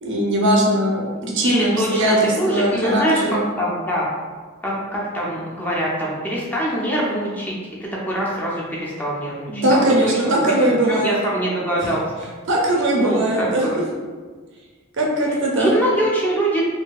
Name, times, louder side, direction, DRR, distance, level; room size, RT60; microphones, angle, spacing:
voice 1, 0.0-3.0 3.3-3.4 9.5-11.2 11.8-11.9 12.5-13.6 15.0-15.7, right 1 dB, 60° right, -2 dB, 0.6 m, -19 dB
voice 2, 1.4-4.1 4.6-7.5 7.8-12.0 13.0-13.8 15.6-16.6, right 1 dB, 10° left, -5 dB, 0.5 m, -24 dB
2.7 x 2.6 x 2.3 m, 1.5 s
head